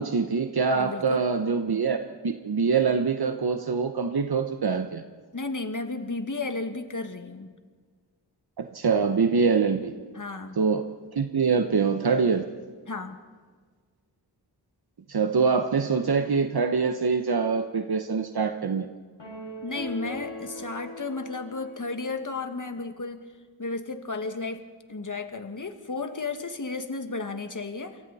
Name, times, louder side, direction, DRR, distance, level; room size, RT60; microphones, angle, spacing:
voice 1, 0.0-2.0 2.2-5.0 8.6-9.9 10.6-10.8 11.1-12.5 15.1-18.9, right 5 dB, 60° right, 7 dB, 1.1 m, -24 dB
voice 2, 0.7-1.3 5.3-7.5 10.1-10.6 12.9-13.2 19.6-23.2 23.6-24.6 24.9-28.0, left 3 dB, 45° left, 7 dB, 2.0 m, -33 dB
sound 1, 19.2-22.7, left 1 dB, 85° left, 6.3 m, -40 dB
28.5 x 23.5 x 4.3 m, 1.5 s
wide cardioid pair, 65°, 42 cm